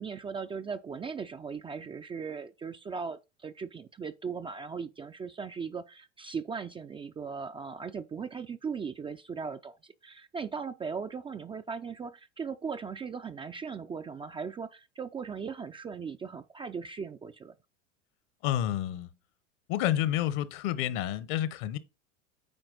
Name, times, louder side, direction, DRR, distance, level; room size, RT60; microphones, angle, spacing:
voice 1, 0.0-17.5, right 5 dB, 15° right, 0.4 m, -38 dB
voice 2, 18.4-19.1 19.7-21.8, left 12 dB, 55° left, 1.0 m, -29 dB
9.0 x 4.5 x 3.9 m
hypercardioid pair, 90°, 36 cm